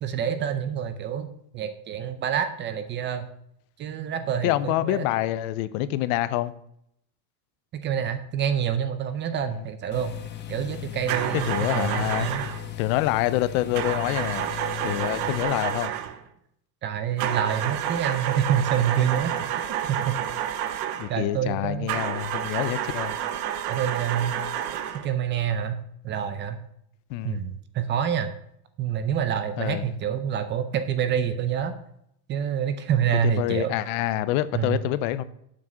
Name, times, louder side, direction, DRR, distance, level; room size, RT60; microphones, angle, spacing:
voice 1, 0.0-1.3 1.5-3.3 3.8-5.1 7.7-10.1 10.5-12.5 16.8-20.2 21.1-21.9 23.7-24.4 25.0-26.6 27.2-28.3 28.8-31.7 32.3-33.7 34.5-34.8, right 8 dB, 25° right, 0.5 m, -27 dB
voice 2, 4.4-6.5 9.5-9.6 11.3-12.3 12.8-14.5 14.8-15.9 21.0-23.2 27.1-27.4 29.6-29.8 33.2-35.2, left 14 dB, 60° left, 0.7 m, -26 dB
sound 1, 9.9-15.4, left 13 dB, 25° left, 0.8 m, -37 dB
sound 2, 11.1-12.7 13.7-16.2 17.2-21.2 21.9-25.1, right 10 dB, 70° right, 1.1 m, -30 dB
7.6 x 6.1 x 6.2 m
cardioid pair, 160°, 45 cm